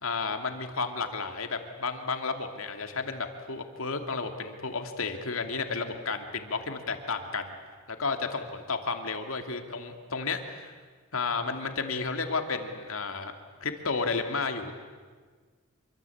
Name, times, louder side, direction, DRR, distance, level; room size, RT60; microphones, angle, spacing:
voice 1, 0.0-7.5 7.9-10.7 11.1-13.3 13.6-14.7, left 4 dB, 70° left, 6 dB, 2.6 m, -32 dB
27.0 x 24.5 x 8.6 m, 1.5 s
head